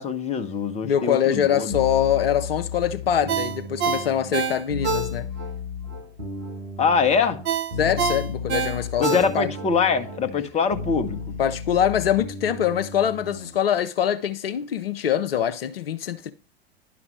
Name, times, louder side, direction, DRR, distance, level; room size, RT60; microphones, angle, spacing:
voice 1, 0.0-1.8 6.8-7.4 9.0-11.2, left 5 dB, 20° left, 1.0 m, -23 dB
voice 2, 0.8-5.3 7.8-9.1 9.3-9.5 11.4-16.3, left 9 dB, 65° left, 0.7 m, -24 dB
sound 1, 1.7-13.6, left 4 dB, 90° right, 1.9 m, -34 dB
Ringtone, 3.3-5.5 5.9-6.0 7.5-9.7 10.1-10.2, right 5 dB, 35° right, 1.5 m, -26 dB
11.0 x 5.9 x 3.2 m
figure-of-eight pair, 85°, 31 cm